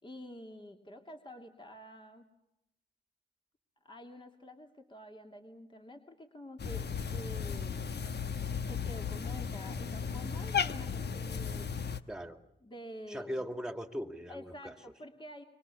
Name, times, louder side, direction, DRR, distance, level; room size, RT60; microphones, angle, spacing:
voice 1, 0.0-2.3 3.8-8.0 8.7-12.1 12.6-13.4 14.3-15.4, equal, 25° left, 3 dB, 2.8 m, -48 dB
Cat, 6.6-12.0, left 6 dB, 60° left, 1.2 m, -35 dB
voice 2, 12.1-12.4 13.1-14.7, equal, 5° right, 8 dB, 2.5 m, -39 dB
25.5 x 24.5 x 7.2 m, 0.86 s
cardioid pair, 60°, 19 cm